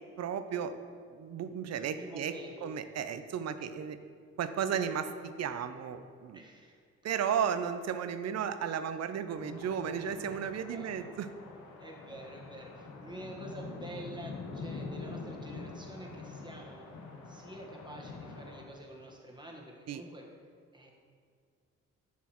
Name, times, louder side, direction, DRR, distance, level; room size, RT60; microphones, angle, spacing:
voice 1, 0.2-0.7 1.1-4.0 4.4-6.4 7.0-11.3 19.9-20.0, right 7 dB, 60° right, 11 dB, 0.5 m, -34 dB
voice 2, 1.8-2.7 4.7-4.8 6.3-6.8 10.7-10.9 11.8-20.3 20.7-20.9, right 1 dB, 15° right, 0 dB, 1.2 m, -48 dB
sound 1, 9.3-18.7, left 3 dB, 90° left, 0.8 m, -45 dB
7.1 x 6.3 x 3.0 m, 2.1 s
cardioid pair, 70°, 29 cm